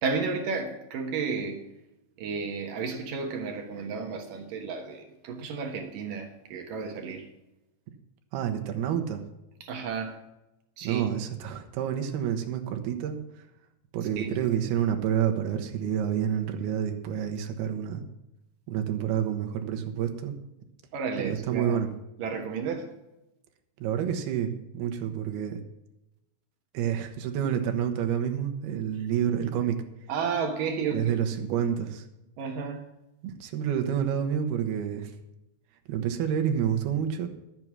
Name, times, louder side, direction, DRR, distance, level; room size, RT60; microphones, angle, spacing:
voice 1, 0.0-1.6 2.2-7.3 9.6-10.2 10.8-11.0 14.2-14.3 20.9-21.8 22.2-22.9 30.1-31.1 31.5-31.6 32.4-32.8, right 5 dB, 65° right, 4 dB, 2.7 m, -32 dB
voice 2, 8.3-9.2 10.8-13.2 13.9-18.0 18.7-20.3 21.2-21.9 23.8-25.6 26.7-29.8 30.9-32.0 33.2-35.1 35.9-37.3, right 9 dB, 85° right, 6 dB, 3.2 m, -28 dB
12.5 x 8.7 x 6.2 m, 0.93 s
omnidirectional pair, 4.4 m